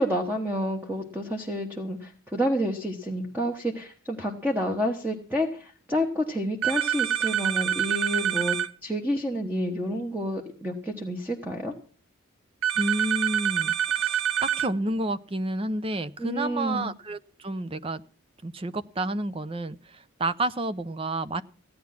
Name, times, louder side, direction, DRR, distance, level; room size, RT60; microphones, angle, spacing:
voice 1, 0.0-11.7 16.2-16.9, equal, 10° right, 2 dB, 1.2 m, -29 dB
sound 1, 6.6-8.7 12.6-14.7, right 9 dB, 80° right, 0.8 m, -26 dB
voice 2, 12.8-18.0 18.4-21.4, right 2 dB, 25° right, 13 dB, 0.6 m, -30 dB
16.0 x 9.5 x 5.9 m, 0.40 s
head